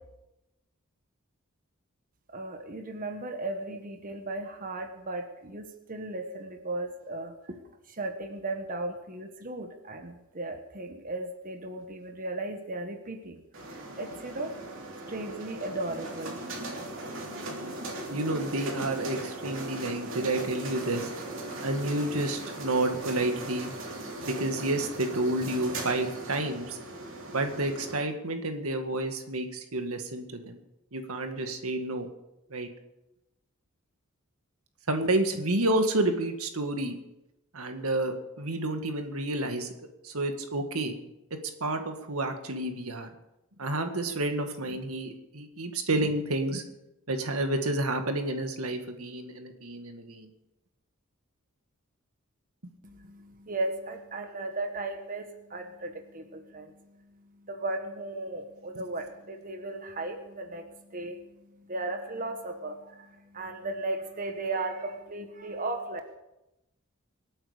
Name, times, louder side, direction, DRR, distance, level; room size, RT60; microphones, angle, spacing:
voice 1, 2.3-7.3 7.9-13.4 14.0-14.5 15.1-16.4 52.8-56.7 57.4-61.3 61.6-66.0, right 2 dB, 40° right, 5 dB, 1.4 m, -36 dB
sound 1, 13.5-28.0, right 2 dB, 60° right, 3.2 m, -38 dB
voice 2, 18.1-21.0 21.6-23.8 24.3-26.8 27.3-30.6 30.9-32.1 32.5-32.7 34.9-37.0 37.5-39.7 40.0-41.0 41.6-43.1 43.6-46.6 47.1-50.3 58.8-58.9, right 2 dB, 85° right, 6 dB, 1.9 m, -30 dB
25.5 x 8.7 x 5.1 m, 0.92 s
head